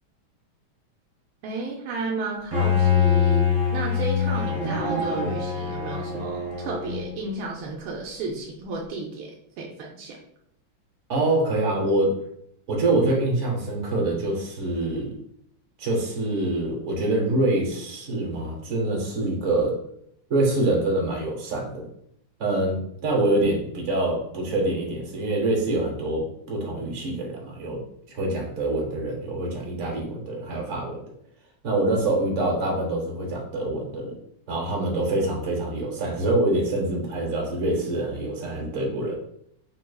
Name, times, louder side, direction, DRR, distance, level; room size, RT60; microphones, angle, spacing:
voice 1, 1.4-3.5 3.7-10.2, right 3 dB, 85° right, -2 dB, 1.4 m, -32 dB
Bowed string instrument, 2.5-7.3, left 6 dB, 30° right, 1.0 m, -24 dB
voice 2, 11.1-12.2 12.7-15.1 15.8-19.8 20.3-21.9 22.4-27.8 28.1-31.0 31.6-34.1 34.5-39.2, right 2 dB, 55° right, -1 dB, 0.8 m, -25 dB
5.6 x 2.7 x 2.2 m, 0.71 s
omnidirectional pair, 2.2 m